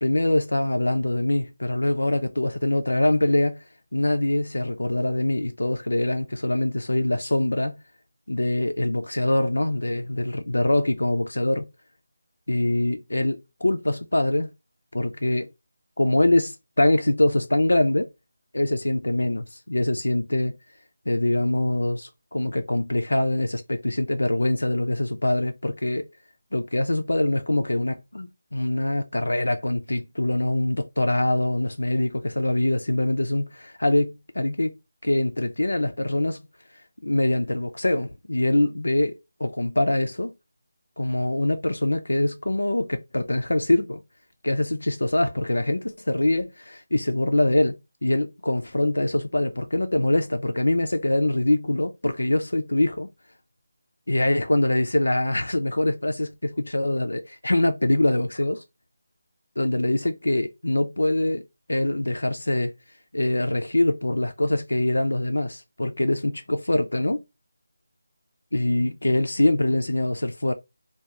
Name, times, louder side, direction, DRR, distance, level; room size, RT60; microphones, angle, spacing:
voice 1, 0.0-3.6 3.9-7.8 8.3-11.7 12.5-14.5 14.9-15.5 16.0-18.1 18.5-20.6 21.1-26.1 26.5-34.7 35.0-36.4 37.0-40.3 41.0-44.0 44.4-53.1 54.1-58.6 59.6-61.4 61.7-62.7 63.1-67.2 68.5-70.5, left 1 dB, 85° left, 0.4 m, -24 dB
2.4 x 2.2 x 2.8 m
figure-of-eight pair, 160°, 0 cm